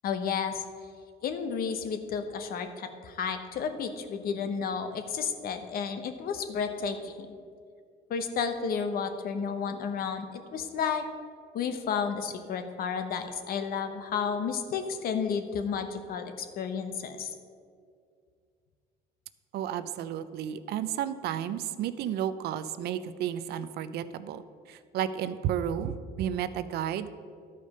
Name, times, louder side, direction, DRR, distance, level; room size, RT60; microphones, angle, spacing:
voice 1, 0.0-0.6 1.2-7.4 8.1-11.0 11.5-17.3, left 6 dB, 60° left, 8 dB, 0.9 m, -32 dB
voice 2, 19.5-24.4 24.7-27.1, right 10 dB, 75° right, 13 dB, 0.5 m, -32 dB
11.5 x 5.1 x 5.4 m, 2.2 s
cardioid pair, 110°, 17 cm